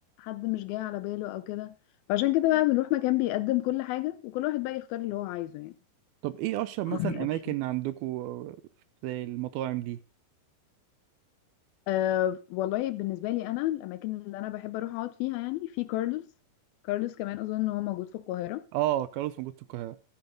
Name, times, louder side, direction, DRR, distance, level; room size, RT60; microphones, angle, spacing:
voice 1, 0.2-1.7 2.1-5.7 6.9-7.3 11.9-16.3 16.9-18.6, left 15 dB, 80° left, 2.3 m, -29 dB
voice 2, 6.2-8.6 9.0-10.0 18.7-20.0, right 15 dB, 80° right, 2.4 m, -31 dB
13.5 x 8.7 x 3.8 m
omnidirectional pair, 4.6 m